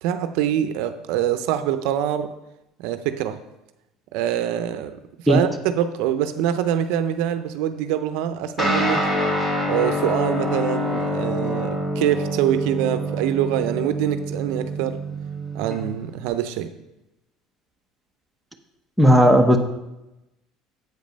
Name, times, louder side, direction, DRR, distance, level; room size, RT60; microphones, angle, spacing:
voice 1, 0.0-2.3 2.8-3.4 4.1-5.0 5.3-5.5 5.8-9.1 9.7-15.0 15.5-16.7, right 10 dB, 80° right, 10 dB, 0.5 m, -24 dB
Guitar, 8.6-16.3, equal, 20° left, 2.1 m, -26 dB
voice 2, 19.0-19.6, equal, ahead, 5 dB, 0.9 m, -14 dB
7.8 x 5.2 x 5.2 m, 0.93 s
cardioid pair, 115°, 0 cm